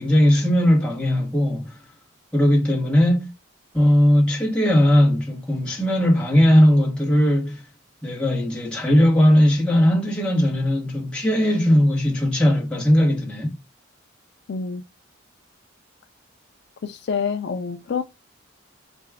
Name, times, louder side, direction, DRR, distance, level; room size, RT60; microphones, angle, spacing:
voice 1, 0.0-1.8 2.3-3.3 3.7-7.6 8.0-13.5, equal, 5° left, 0.9 m, -18 dB
voice 2, 14.5-14.8 16.8-18.0, left 6 dB, 55° left, 0.3 m, -27 dB
3.4 x 2.2 x 3.3 m
head